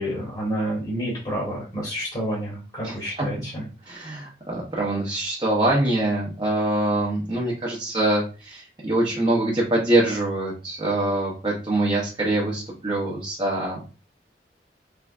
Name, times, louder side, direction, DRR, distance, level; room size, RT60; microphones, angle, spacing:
voice 1, 0.0-3.6, equal, 30° left, -5 dB, 1.2 m, -29 dB
voice 2, 2.8-3.3 3.9-13.8, right 1 dB, 25° right, -4 dB, 0.7 m, -24 dB
3.4 x 3.1 x 2.4 m, 0.34 s
head